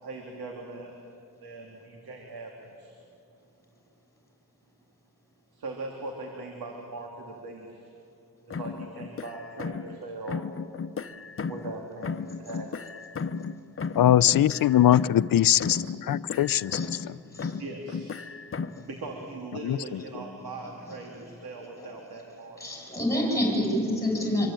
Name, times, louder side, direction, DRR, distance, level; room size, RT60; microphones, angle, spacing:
voice 1, 0.0-0.9 1.4-2.9 5.5-7.8 8.5-10.5 11.5-12.7 17.6-22.6, right 2 dB, 85° right, 1 dB, 3.4 m, -40 dB
sound 1, 8.5-10.0 10.3-11.8 12.0-15.3 15.6-17.1 17.4-18.9, left 5 dB, 35° left, 0.9 m, -35 dB
voice 2, 13.9-17.2 19.6-20.0, left 11 dB, 65° left, 17 dB, 0.7 m, -22 dB
voice 3, 22.6-24.5, left 1 dB, 10° left, 0 dB, 6.7 m, -27 dB
26.5 x 23.5 x 9.0 m, 2.7 s
cardioid pair, 100°, 36 cm